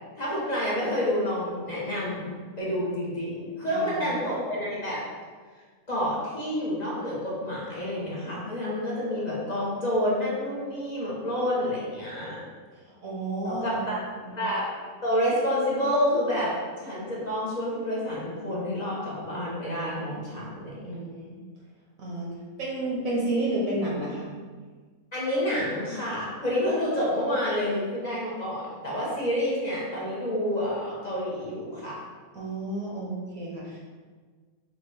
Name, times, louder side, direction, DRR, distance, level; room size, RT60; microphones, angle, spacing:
voice 1, 0.2-2.3 2.6-5.0 5.9-12.4 13.4-14.0 14.4-14.6 15.0-20.9 25.1-32.0, equal, 30° left, -7 dB, 0.9 m, -28 dB
voice 2, 3.7-4.1 12.8-13.8 14.2-14.4 20.8-21.4 22.0-24.3 32.3-33.8, right 2 dB, 65° right, -4 dB, 1.1 m, -31 dB
5.3 x 2.5 x 3.3 m, 1.5 s
omnidirectional pair, 1.6 m